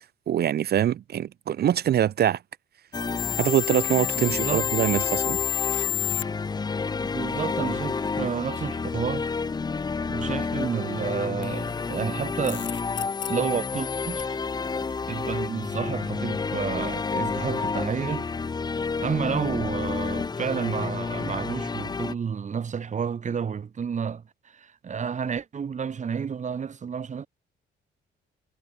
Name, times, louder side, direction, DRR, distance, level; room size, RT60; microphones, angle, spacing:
voice 1, 0.3-2.4 3.4-5.4, right 10 dB, 55° right, 0.6 m, -24 dB
sound 1, 2.9-22.1, left 4 dB, 20° left, 0.5 m, -30 dB
sound 2, 3.2-6.2 11.4-14.3, left 12 dB, 70° left, 1.0 m, -31 dB
voice 2, 4.2-4.7 7.0-9.3 10.1-12.7 13.3-14.3 15.1-18.3 19.0-24.2 24.5-27.3, right 6 dB, 35° right, 1.0 m, -30 dB
sound 3, 8.2-8.4 8.9-9.1 9.7-9.9 10.4-10.5 11.1-11.3 11.8-11.9 12.6-12.9 13.4-13.7 14.1-14.3 14.9-15.1 15.8-16.0 16.5-16.8 17.2-17.4 18.0-18.2, right 1 dB, 5° right, 5.4 m, -55 dB
cardioid pair, 90°, 20 cm